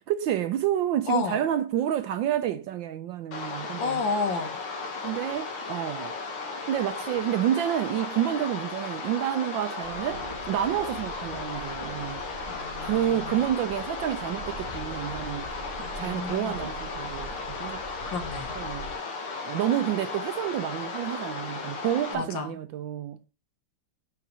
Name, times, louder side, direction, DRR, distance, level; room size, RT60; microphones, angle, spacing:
voice 1, 0.1-4.0 5.0-6.1 6.7-12.2 12.8-15.5 16.0-17.8 18.6-18.9 19.4-23.2, right 11 dB, 75° right, 1.2 m, -29 dB
voice 2, 1.1-1.4 3.8-4.6 12.5-13.4 15.8-16.6 18.0-18.5 22.1-22.6, left 4 dB, 60° left, 1.8 m, -31 dB
sound 1, 3.3-22.1, left 4 dB, 80° left, 2.2 m, -35 dB
sound 2, 9.8-18.9, right 2 dB, 35° right, 0.7 m, -43 dB
5.7 x 4.6 x 5.5 m
omnidirectional pair, 2.4 m